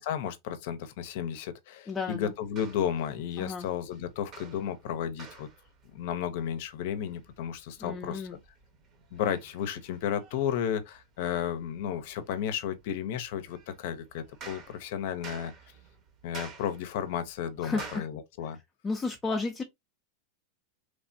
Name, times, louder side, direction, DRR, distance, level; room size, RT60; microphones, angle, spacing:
voice 1, 0.0-5.5 5.9-8.3 9.1-15.5 16.2-18.6, left 9 dB, 65° left, 0.6 m, -33 dB
voice 2, 1.9-2.3 3.4-3.7 7.8-8.4 17.6-18.1 18.8-19.6, left 3 dB, 20° left, 0.5 m, -32 dB
sound 1, 2.2-18.0, right 5 dB, 40° right, 0.9 m, -51 dB
3.2 x 2.1 x 2.6 m
hypercardioid pair, 115°, 0 cm